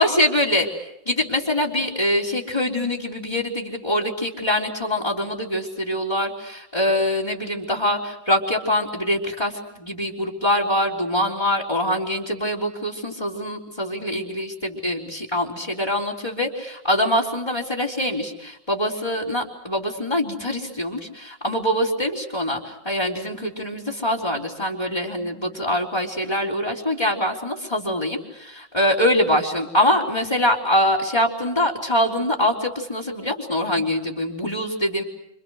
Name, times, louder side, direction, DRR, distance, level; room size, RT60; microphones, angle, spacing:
voice 1, 0.0-35.0, left 1 dB, 15° left, -4 dB, 3.7 m, -24 dB
29.5 x 27.5 x 6.5 m, 0.81 s
omnidirectional pair, 1.9 m